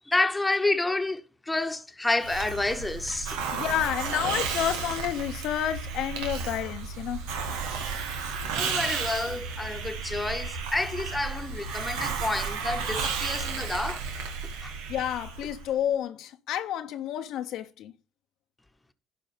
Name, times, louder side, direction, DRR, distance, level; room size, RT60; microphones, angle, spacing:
voice 1, 0.1-3.4 8.6-14.0 14.6-14.7, left 2 dB, 15° left, 1.2 m, -29 dB
Hiss, 2.2-15.7, right 5 dB, 85° right, 1.5 m, -33 dB
voice 2, 3.5-7.2 14.9-17.9, left 11 dB, 70° left, 0.8 m, -30 dB
12.0 x 5.2 x 5.2 m
supercardioid pair, 70°, 0 cm